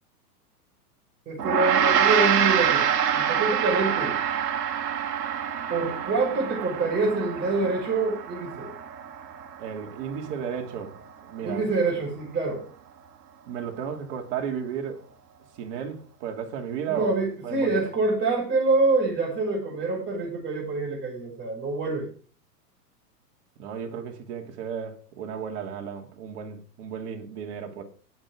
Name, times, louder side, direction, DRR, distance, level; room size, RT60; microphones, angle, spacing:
voice 1, 1.3-2.9 3.1-4.2 5.7-8.7 11.4-12.6 16.8-22.1, right 3 dB, 25° right, 5.9 m, -26 dB
Gong, 1.4-10.9, right 9 dB, 90° right, 1.5 m, -26 dB
voice 2, 9.6-11.0 11.3-11.6 13.5-15.0 15.6-17.1 17.4-17.9 21.9-22.0 23.6-27.8, right 7 dB, 45° right, 2.8 m, -34 dB
19.0 x 6.4 x 3.7 m
hypercardioid pair, 135°, 47 cm